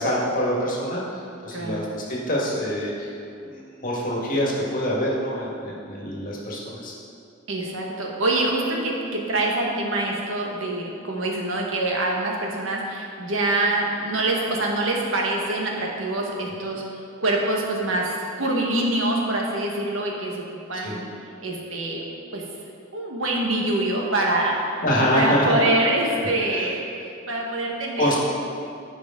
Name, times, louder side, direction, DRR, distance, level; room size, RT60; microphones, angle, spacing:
voice 1, 0.0-3.1 3.4-6.9 20.8-21.0 24.8-25.5 26.5-26.7 28.0-28.2, equal, 45° left, -4 dB, 1.8 m, -25 dB
voice 2, 1.5-1.8 7.5-21.1 21.4-22.0 22.3-22.4 22.9-24.6 25.1-26.8 27.3-28.2, right 2 dB, 90° right, -1 dB, 1.5 m, -25 dB
15.0 x 5.2 x 3.8 m, 2.5 s
head